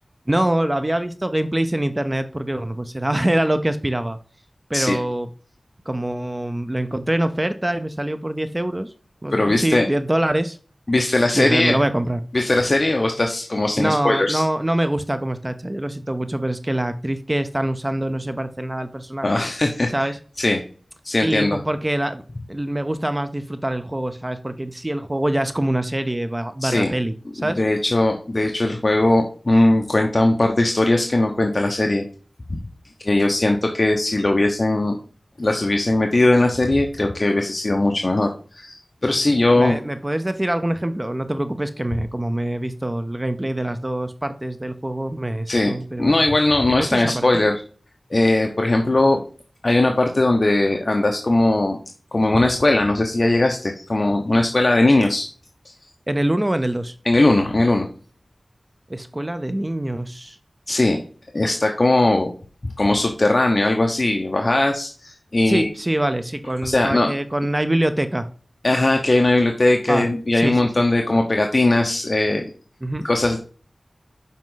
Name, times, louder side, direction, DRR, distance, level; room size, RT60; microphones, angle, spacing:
voice 1, 0.3-4.2 4.7-5.3 5.9-8.9 9.2-10.6 11.0-12.2 13.8-19.4 19.9-20.2 21.2-22.2 22.5-27.6 39.6-46.2 46.8-47.4 56.1-56.9 58.9-60.4 65.5-68.3 69.9-71.2 72.8-73.1, right 1 dB, 20° right, 10 dB, 0.6 m, -24 dB
voice 2, 9.3-9.9 10.9-11.8 12.3-14.4 19.2-19.9 20.4-20.6 21.0-21.6 26.6-26.9 27.4-32.1 32.5-32.6 33.0-35.0 35.4-39.8 45.5-47.6 48.1-49.2 49.6-51.8 52.1-55.3 55.6-55.7 57.1-57.9 60.7-61.0 61.3-62.3 62.8-65.7 66.6-67.1 68.6-72.5 73.0-73.4, left 2 dB, 45° left, 3 dB, 0.9 m, -19 dB
7.4 x 5.2 x 3.9 m, 0.42 s
wide cardioid pair, 75°, 0 cm